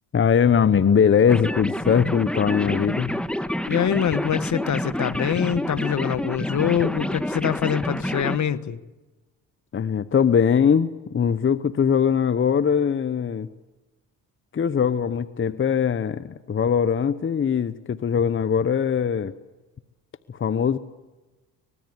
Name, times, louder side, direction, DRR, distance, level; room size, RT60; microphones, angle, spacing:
voice 1, 0.1-3.1 9.7-13.5 14.5-19.3 20.3-20.8, left 7 dB, 30° left, 15 dB, 1.0 m, -21 dB
sound 1, 1.3-8.4, equal, 5° left, 1.6 m, -28 dB
voice 2, 3.7-8.8, left 8 dB, 50° left, 16 dB, 1.4 m, -24 dB
25.0 x 20.5 x 9.6 m, 1.1 s
supercardioid pair, 75°, 38 cm